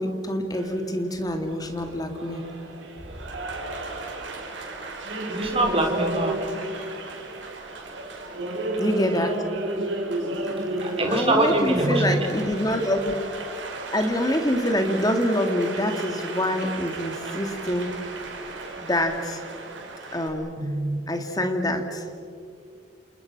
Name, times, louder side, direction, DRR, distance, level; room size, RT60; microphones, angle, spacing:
voice 1, 0.0-2.4 8.8-9.3 11.1-13.2 13.9-17.9 18.8-19.4 20.1-20.5 21.1-22.0, left 1 dB, 20° left, 5 dB, 2.3 m, -25 dB
Applause, 0.5-20.3, right 2 dB, 75° right, 5.5 m, -34 dB
voice 2, 5.3-6.4 10.8-12.2 20.6-21.0, right 1 dB, 30° right, 1 dB, 4.1 m, -23 dB
29.0 x 28.5 x 6.2 m, 2.3 s
head